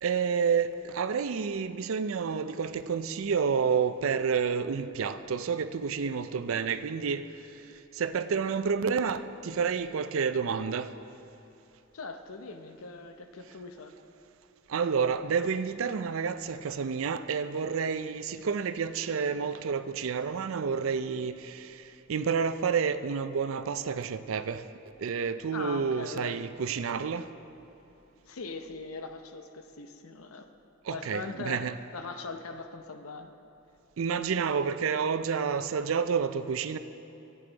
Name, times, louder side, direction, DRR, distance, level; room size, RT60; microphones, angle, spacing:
voice 1, 0.0-7.2 7.5-7.7 7.9-10.9 14.7-24.7 25.0-27.3 30.8-31.7 34.0-36.8, right 6 dB, 70° right, 0.4 m, -29 dB
voice 2, 11.9-13.9 25.5-26.4 28.3-30.5 30.9-33.3, left 3 dB, 90° left, 0.7 m, -40 dB
15.0 x 9.1 x 4.0 m
head